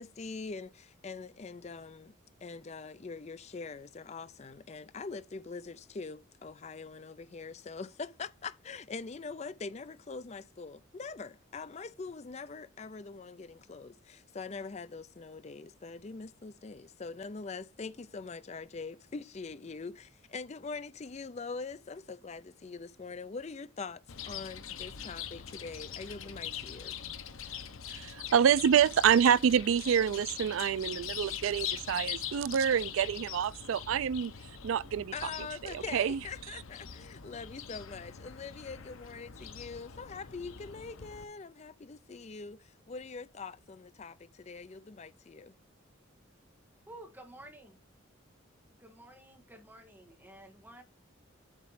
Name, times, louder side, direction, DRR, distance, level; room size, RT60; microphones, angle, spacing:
voice 1, 0.0-2.1 2.4-27.0 35.1-45.5, left 4 dB, 35° left, 0.4 m, -43 dB
Chirp tweet, 24.1-41.2, left 9 dB, 85° left, 0.8 m, -43 dB
voice 2, 27.9-34.3 34.6-35.1 35.7-36.2, right 8 dB, 80° right, 0.3 m, -27 dB
voice 3, 46.9-47.8 48.8-50.8, right 1 dB, 10° right, 1.3 m, -52 dB
8.1 x 3.1 x 5.6 m
head